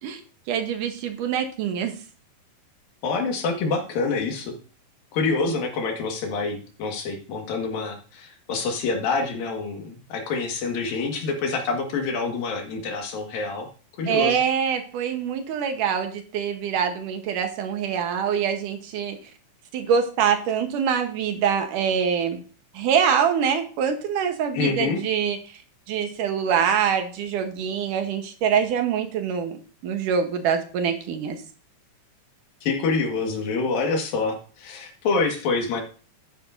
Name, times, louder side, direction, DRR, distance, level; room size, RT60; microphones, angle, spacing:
voice 1, 0.5-1.9 14.1-19.2 19.7-22.4 22.7-25.4 25.9-31.4, right 7 dB, 75° right, 6 dB, 2.5 m, -24 dB
voice 2, 3.0-4.5 5.1-13.7 14.0-14.4 24.5-25.0 32.6-35.8, left 4 dB, 80° left, 3 dB, 3.5 m, -26 dB
12.0 x 9.9 x 2.6 m, 0.39 s
omnidirectional pair, 4.0 m